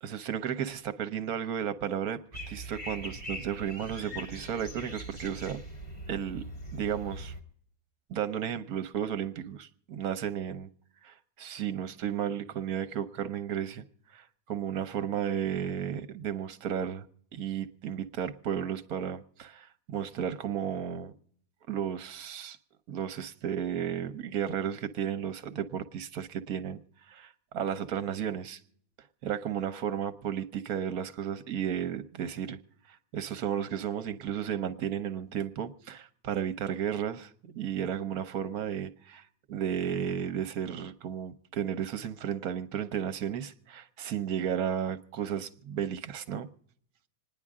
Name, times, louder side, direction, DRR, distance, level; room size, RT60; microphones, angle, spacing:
voice 1, 0.0-2.2 2.5-5.6 6.1-6.4 6.7-7.3 8.1-10.7 11.0-13.8 14.1-17.1 17.3-21.1 21.7-22.6 22.9-26.8 27.1-28.6 29.2-32.6 32.9-46.5, right 9 dB, 70° right, 1.3 m, -33 dB
sound 1, 2.3-7.4, equal, 25° left, 2.5 m, -41 dB
26.5 x 10.5 x 3.6 m
omnidirectional pair, 1.7 m